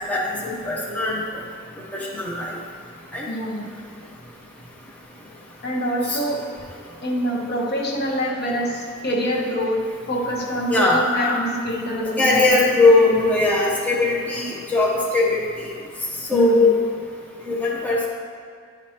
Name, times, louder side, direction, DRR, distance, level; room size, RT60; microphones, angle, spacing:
voice 1, 0.1-1.2 1.9-2.6 3.1-3.3 6.1-6.2 10.7-11.0 12.2-15.7 16.3-16.7 17.4-18.1, left 2 dB, 10° left, -5 dB, 0.8 m, -19 dB
voice 2, 3.3-3.7 5.6-6.5 7.0-9.8 10.1-13.1 16.3-16.7, equal, 50° left, 0 dB, 1.0 m, -25 dB
10.5 x 4.9 x 2.9 m, 2.2 s
head